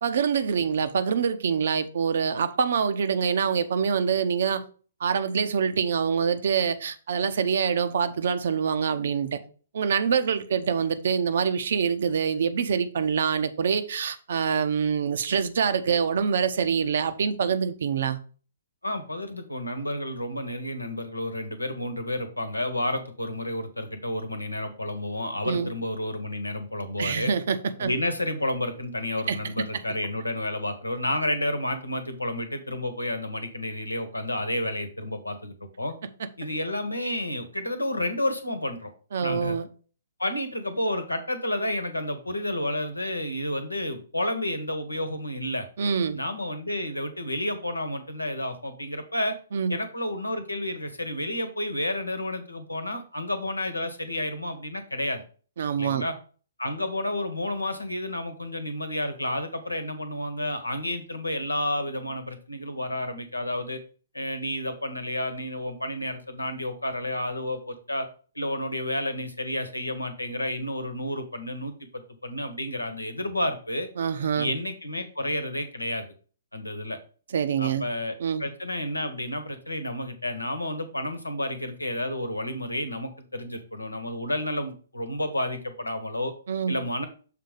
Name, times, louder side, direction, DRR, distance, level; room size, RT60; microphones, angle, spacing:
voice 1, 0.0-4.6 5.0-9.4 9.7-18.2 25.4-25.7 27.0-27.9 29.3-29.8 39.1-39.7 45.8-46.2 49.5-49.8 55.6-56.0 74.0-74.5 77.3-77.9 78.2-78.5 86.5-86.7, right 6 dB, 55° right, 0.7 m, -25 dB
voice 2, 18.8-27.3 27.8-36.0 36.4-38.9 39.2-39.6 40.2-45.7 46.1-49.3 49.7-55.2 55.8-56.1 56.6-63.8 64.1-68.1 68.3-73.9 74.4-76.0 76.5-77.0 77.6-78.1 78.4-86.3 86.7-87.1, left 1 dB, 85° left, 1.1 m, -30 dB
6.8 x 3.7 x 4.9 m
figure-of-eight pair, 125°, 0 cm